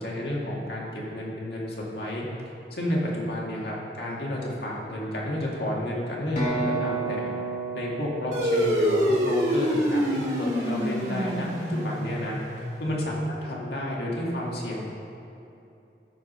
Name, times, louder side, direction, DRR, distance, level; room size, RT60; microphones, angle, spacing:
voice 1, 0.0-2.2 2.7-7.3 7.7-12.4 12.8-14.8, left 1 dB, 60° left, -3 dB, 2.0 m, -31 dB
sound 1, 6.4-10.1, right 3 dB, 40° left, 2.1 m, -32 dB
sound 2, 8.3-13.2, equal, 40° right, 2.0 m, -26 dB
13.5 x 4.9 x 5.5 m, 2.7 s
head